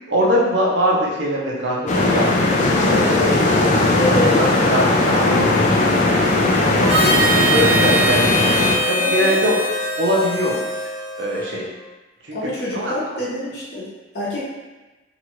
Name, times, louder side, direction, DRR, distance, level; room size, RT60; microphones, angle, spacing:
voice 1, 0.1-2.3 2.8-3.2 4.3-5.5 6.0-8.5 8.9-9.6 10.0-10.6 11.2-11.7 12.2-12.4 12.7-12.9, equal, 65° right, -4 dB, 0.7 m, -22 dB
sound 1, 1.9-8.8, left 2 dB, 40° left, 0.4 m, -18 dB
voice 2, 2.8-3.7 3.9-4.4 8.9-9.4 12.3-13.9 14.1-14.4, left 1 dB, 60° left, -7 dB, 0.9 m, -25 dB
Harmonica, 6.9-11.6, right 1 dB, 30° right, 0.4 m, -22 dB
2.9 x 2.4 x 3.0 m, 1.2 s
head